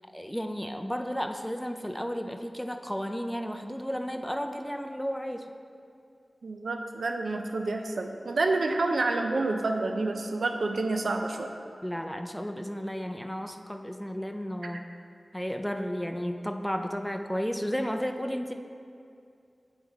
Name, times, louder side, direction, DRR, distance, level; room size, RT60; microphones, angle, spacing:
voice 1, 0.1-5.5 11.8-14.8 15.3-18.5, equal, 5° left, 5 dB, 0.4 m, -33 dB
voice 2, 6.4-11.5, right 3 dB, 90° right, 4 dB, 0.4 m, -28 dB
8.7 x 3.6 x 4.2 m, 2.4 s
cardioid pair, 45°, 0 cm